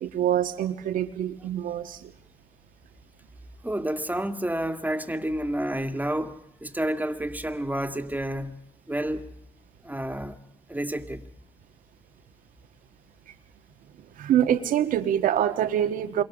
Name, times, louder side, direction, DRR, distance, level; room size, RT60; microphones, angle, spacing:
voice 1, 0.0-2.1 14.1-16.2, right 10 dB, 75° right, 1.5 m, -25 dB
voice 2, 3.6-8.6 8.9-9.3 9.8-10.4 10.7-11.2, right 1 dB, 10° right, 2.3 m, -30 dB
28.0 x 23.0 x 6.3 m
hypercardioid pair, 45°, 14 cm